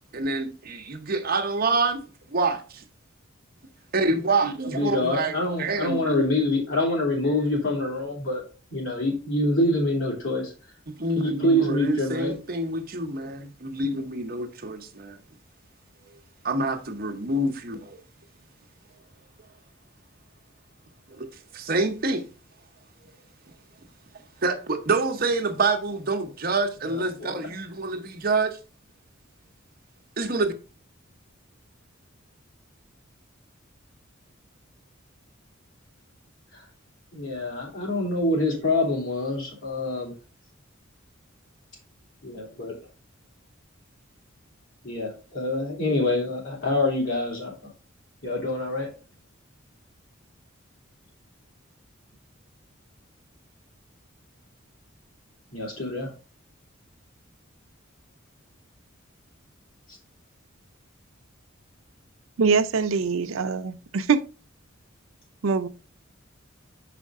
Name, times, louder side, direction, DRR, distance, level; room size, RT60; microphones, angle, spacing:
voice 1, 0.1-2.8 3.9-6.3 10.9-15.2 16.4-18.0 21.1-21.3 21.5-22.2 24.4-28.6 30.2-30.5, right 3 dB, 45° right, 0.9 m, -27 dB
voice 2, 4.7-8.4 8.7-10.5 11.1-12.4 26.9-27.4 36.5-36.6 37.1-40.1 42.2-42.7 44.8-47.7 48.2-48.9 55.5-56.1, left 1 dB, 85° left, 3.1 m, -26 dB
voice 3, 62.4-64.3 65.4-65.7, right 5 dB, 85° right, 0.5 m, -23 dB
6.5 x 5.1 x 3.6 m
head